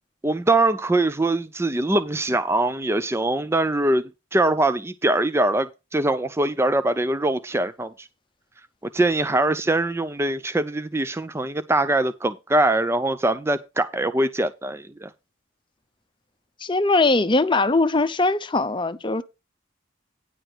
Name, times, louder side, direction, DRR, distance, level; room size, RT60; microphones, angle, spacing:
voice 1, 0.2-8.1 8.9-15.1, right 2 dB, 10° right, 0.4 m, -23 dB
voice 2, 16.6-19.2, left 2 dB, 25° left, 0.7 m, -21 dB
10.0 x 4.7 x 6.0 m
head